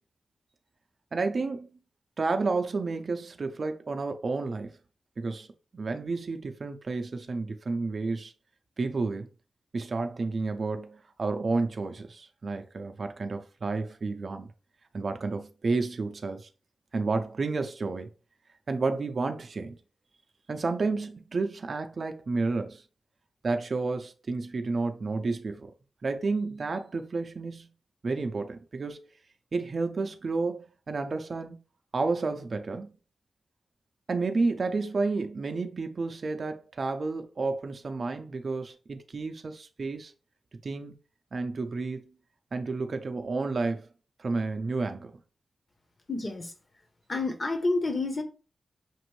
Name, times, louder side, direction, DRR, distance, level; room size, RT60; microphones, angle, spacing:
voice 1, 1.1-1.7 2.2-4.7 5.2-5.5 5.7-8.3 8.8-9.3 9.7-14.5 14.9-16.5 16.9-18.1 18.7-19.8 20.5-22.8 23.4-25.7 26.0-27.7 28.0-29.1 29.5-31.6 31.9-32.9 34.1-40.1 40.6-40.9 41.3-42.0 42.5-43.9 44.2-45.1, right 3 dB, 45° right, 0.5 m, -31 dB
voice 2, 46.1-46.5 47.1-48.2, left 3 dB, 35° left, 0.9 m, -29 dB
5.9 x 2.6 x 3.1 m
wide cardioid pair, 125°, 0 cm